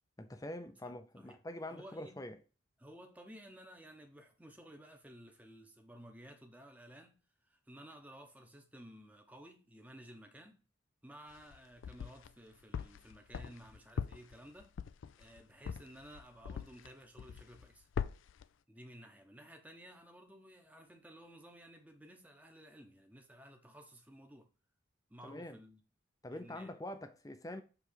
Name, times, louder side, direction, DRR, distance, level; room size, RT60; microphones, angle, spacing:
voice 1, 0.2-2.4 25.2-25.6 26.2-27.6, left 1 dB, 15° left, 0.6 m, -45 dB
voice 2, 0.8-1.4 1.6-2.1 2.8-10.6 11.0-14.7 15.2-17.9 18.7-24.5 25.1-25.8 26.3-26.7, equal, 10° right, 0.9 m, -55 dB
sound 1, 11.3-12.3 12.7-16.9 17.2-17.7 17.9-18.4, left 6 dB, 75° left, 0.3 m, -41 dB
6.8 x 3.2 x 4.6 m
head